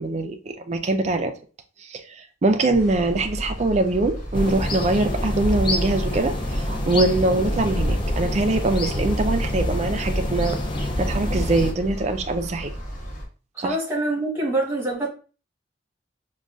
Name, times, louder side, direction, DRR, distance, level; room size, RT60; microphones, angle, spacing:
voice 1, 0.0-1.3 1.9-10.6 11.0-12.7 13.6-13.8, right 2 dB, 35° right, 0.4 m, -23 dB
sound 1, 2.7-13.3, equal, 45° left, 1.3 m, -34 dB
sound 2, 4.3-11.7, left 1 dB, 25° left, 0.4 m, -26 dB
voice 2, 13.5-15.1, right 2 dB, 15° right, 1.2 m, -25 dB
5.1 x 2.2 x 2.4 m
head